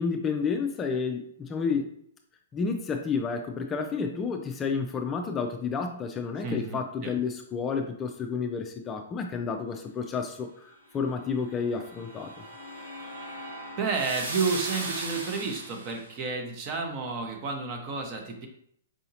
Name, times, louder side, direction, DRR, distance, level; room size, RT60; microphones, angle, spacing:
voice 1, 0.0-1.9 2.5-12.4, left 5 dB, 20° left, 4 dB, 0.3 m, -30 dB
voice 2, 6.4-7.1 13.8-18.5, right 4 dB, 35° right, 3 dB, 0.8 m, -31 dB
sound 1, 11.4-16.0, right 2 dB, 75° right, 1.1 m, -38 dB
4.8 x 2.7 x 2.7 m, 0.67 s
hypercardioid pair, 130°, 0 cm